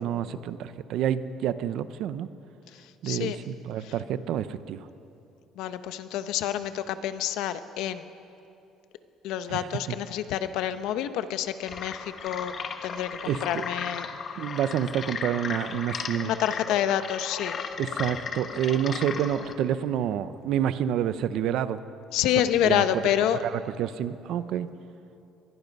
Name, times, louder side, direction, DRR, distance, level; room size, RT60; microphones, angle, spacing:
voice 1, 0.0-2.3 3.0-4.9 9.5-10.0 13.3-13.7 14.4-16.4 17.8-21.8 22.6-23.0 23.4-24.7, right 10 dB, 55° right, 13 dB, 0.7 m, -28 dB
voice 2, 3.0-3.4 5.6-8.1 9.2-12.5 12.8-13.1 13.4-14.1 16.2-17.6 22.1-23.4, left 11 dB, 70° left, 11 dB, 1.0 m, -27 dB
sound 1, 11.6-19.5, left 6 dB, 30° left, 1.1 m, -36 dB
24.0 x 21.0 x 5.4 m, 2.7 s
cardioid pair, 170°, 0 cm